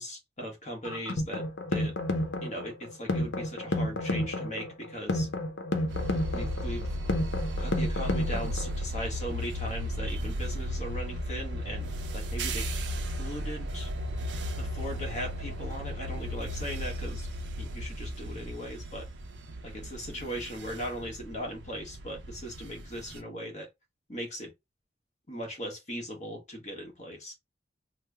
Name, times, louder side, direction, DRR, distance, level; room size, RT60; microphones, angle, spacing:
voice 1, 0.0-1.9 2.4-5.3 6.3-6.9 7.6-12.6 13.2-13.9 14.6-17.3 17.6-19.1 19.6-23.7 24.1-24.5 25.3-27.3, equal, 40° left, 1.1 m, -39 dB
sound 1, 0.8-8.8, left 1 dB, 85° left, 0.7 m, -31 dB
sound 2, 5.9-23.2, equal, 75° right, 0.6 m, -35 dB
3.1 x 2.1 x 3.3 m
head